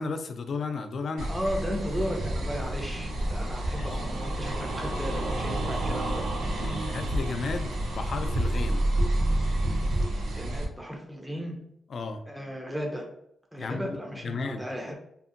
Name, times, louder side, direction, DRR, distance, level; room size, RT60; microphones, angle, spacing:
voice 1, 0.0-1.3 3.8-3.9 6.6-8.8 11.9-12.2 13.6-14.0 14.2-14.6, left 4 dB, 55° left, 7 dB, 0.3 m, -33 dB
sound 1, 1.2-10.6, right 1 dB, 90° right, 0.5 m, -29 dB
voice 2, 1.3-6.3 10.3-11.6 12.3-13.1 13.5-15.0, equal, 5° right, 0 dB, 0.5 m, -35 dB
2.6 x 2.6 x 2.5 m, 0.75 s
cardioid pair, 105°, 0 cm